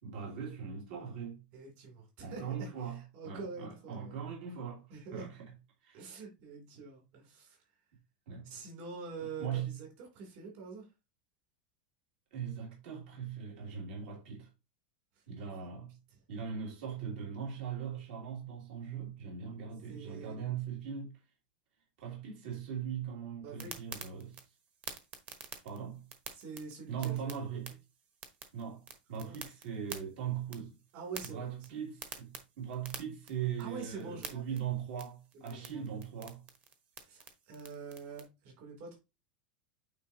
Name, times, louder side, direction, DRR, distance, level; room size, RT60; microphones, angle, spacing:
voice 1, 0.0-1.4 2.2-3.0 3.2-4.9 5.1-5.5 5.8-6.0 8.3-8.5 9.4-9.7 12.3-14.5 15.3-15.9 16.3-21.2 22.0-24.4 25.6-26.0 26.9-27.7 28.5-30.7 31.3-36.4, right 8 dB, 65° right, 2.7 m, -40 dB
voice 2, 1.5-4.2 4.9-5.3 5.9-7.6 8.4-10.9 15.2-15.3 19.9-20.6 23.4-23.8 26.3-27.3 29.1-29.4 30.9-31.7 33.6-34.6 35.3-35.8 37.1-39.0, right 4 dB, 45° right, 3.0 m, -46 dB
sound 1, 23.6-38.2, right 6 dB, 25° right, 1.1 m, -50 dB
8.7 x 4.2 x 2.8 m
supercardioid pair, 160°, 5 cm